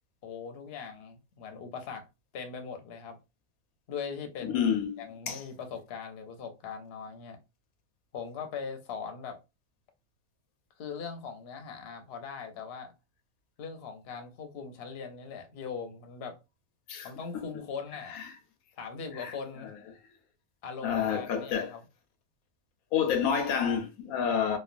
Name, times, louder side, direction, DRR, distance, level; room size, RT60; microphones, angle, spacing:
voice 1, 0.2-2.1 2.3-3.2 3.9-7.4 8.1-9.4 10.8-12.9 13.6-16.4 17.0-18.2 18.7-19.7 20.6-21.8, left 6 dB, 55° left, 0.8 m, -40 dB
voice 2, 4.4-5.4 16.9-17.1 17.3-17.4 18.1-18.2 19.2-19.3 20.8-21.7 22.9-24.6, left 7 dB, 90° left, 1.1 m, -29 dB
3.0 x 2.2 x 2.4 m
omnidirectional pair, 1.5 m